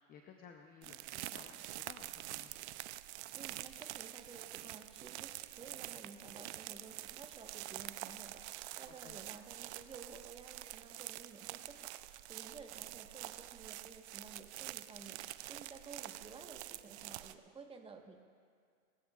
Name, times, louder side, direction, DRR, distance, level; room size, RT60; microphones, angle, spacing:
voice 1, 0.0-2.6 8.9-9.2, left 6 dB, 20° left, 4 dB, 0.7 m, -57 dB
sound 1, 0.8-17.3, right 16 dB, 50° right, 0.6 m, -47 dB
voice 2, 3.3-18.2, right 4 dB, 15° right, 3 dB, 1.3 m, -54 dB
28.0 x 16.0 x 2.4 m, 2.1 s
hypercardioid pair, 125°, 42 cm